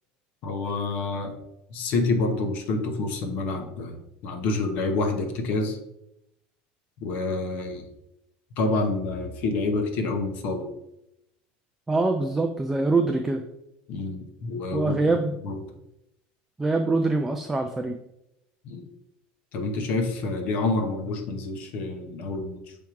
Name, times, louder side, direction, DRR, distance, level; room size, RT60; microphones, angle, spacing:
voice 1, 0.4-1.3 1.7-5.8 7.0-7.9 8.6-10.7 13.9-15.0 15.4-15.6 18.6-18.9 19.5-22.8, left 3 dB, 40° left, 5 dB, 0.9 m, -28 dB
voice 2, 11.9-13.4 14.7-15.4 16.6-18.0, right 3 dB, 5° right, 4 dB, 0.3 m, -24 dB
6.3 x 3.5 x 4.6 m, 0.84 s
cardioid pair, 170°, 4 cm